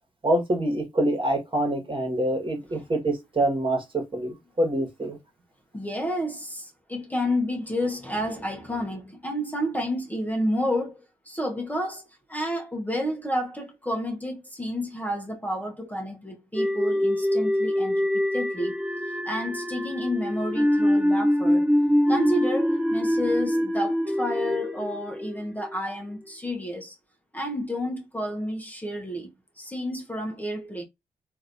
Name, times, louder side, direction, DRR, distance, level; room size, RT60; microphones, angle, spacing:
voice 1, 0.2-5.2, right 1 dB, 35° right, 1.5 m, -26 dB
voice 2, 5.7-12.0 12.3-18.7 19.0-21.7 22.1-27.0 27.3-29.3 29.6-30.8, equal, 10° left, 0.9 m, -30 dB
sound 1, 16.5-25.8, left 1 dB, 5° right, 1.3 m, -24 dB
3.0 x 2.6 x 2.6 m
supercardioid pair, 50°, 14 cm